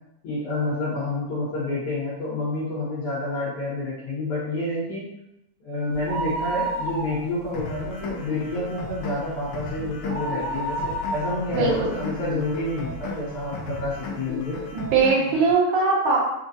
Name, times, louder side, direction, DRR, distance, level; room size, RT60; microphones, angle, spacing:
voice 1, 0.2-5.0 5.6-14.6, left 2 dB, 55° left, -9 dB, 1.8 m, -29 dB
sound 1, 5.9-7.6 7.9-8.0 8.5-12.9 13.4-13.5 14.3-14.4 14.6-14.7, right 2 dB, 55° right, 1.7 m, -31 dB
sound 2, 7.5-15.5, left 3 dB, 85° left, 1.4 m, -35 dB
voice 2, 11.5-11.9 14.7-16.3, right 4 dB, 85° right, -3 dB, 2.4 m, -21 dB
5.2 x 2.4 x 2.6 m, 0.84 s
omnidirectional pair, 3.4 m